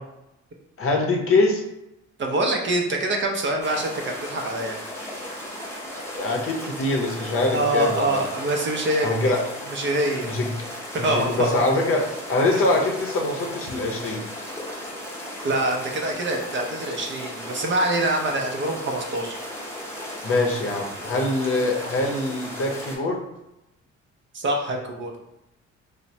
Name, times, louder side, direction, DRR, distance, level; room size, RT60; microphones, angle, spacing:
voice 1, 0.8-1.6 6.1-8.2 9.0-9.4 10.2-10.5 11.0-12.0 12.3-14.2 20.2-23.2, left 2 dB, 45° left, 1 dB, 0.6 m, -23 dB
voice 2, 2.2-4.8 7.5-9.3 9.7-10.4 10.9-11.5 12.5-12.7 15.4-19.3 24.3-25.1, right 2 dB, 40° right, 2 dB, 0.5 m, -25 dB
sound 1, 3.6-23.0, left 1 dB, 10° left, 0.8 m, -36 dB
3.0 x 2.0 x 2.7 m, 0.89 s
cardioid pair, 90°, 30 cm